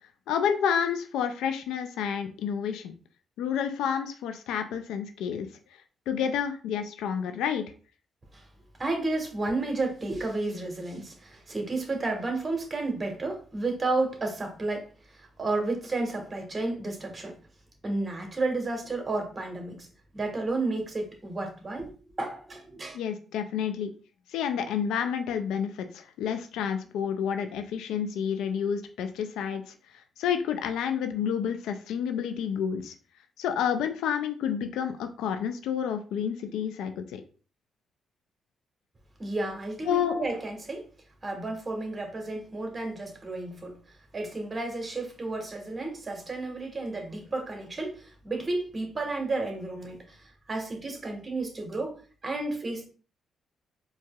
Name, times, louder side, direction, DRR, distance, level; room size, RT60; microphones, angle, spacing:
voice 1, 0.3-2.9 3.4-5.5 6.1-7.7 22.9-23.9 24.3-29.6 30.2-32.9 33.4-37.2 39.9-40.2, left 8 dB, 85° left, 0.3 m, -29 dB
voice 2, 8.8-17.4 17.8-19.9 20.1-21.9 22.2-23.0 39.2-40.9 41.2-43.8 44.1-52.0 52.2-52.9, right 2 dB, 35° right, 1.4 m, -32 dB
4.5 x 2.9 x 2.3 m
supercardioid pair, 65°, 0 cm